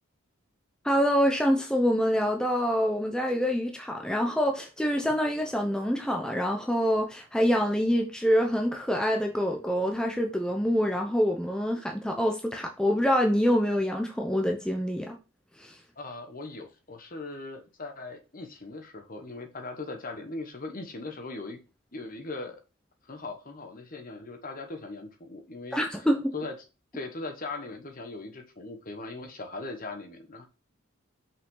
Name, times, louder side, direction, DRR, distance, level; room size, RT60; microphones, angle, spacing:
voice 1, 0.8-15.2 15.6-15.7 25.7-26.2, equal, 5° left, 0.7 m, -26 dB
voice 2, 16.0-21.6 21.9-22.6 23.0-26.1 26.3-26.6 26.9-30.5, left 3 dB, 40° left, 1.2 m, -39 dB
6.0 x 5.7 x 3.8 m
head